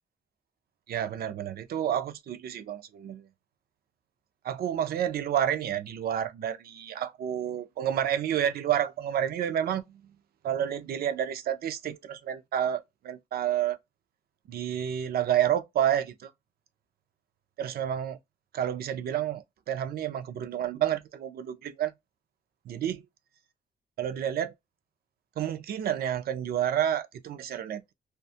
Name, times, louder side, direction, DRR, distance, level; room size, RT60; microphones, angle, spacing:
voice 1, 0.9-3.2 4.4-9.8 10.4-13.8 14.5-16.3 17.6-18.2 18.5-21.9 22.7-23.0 24.0-24.5 25.4-27.9, right 10 dB, 80° right, 0.4 m, -29 dB
2.4 x 2.2 x 2.6 m
wide cardioid pair, 140°, 16 cm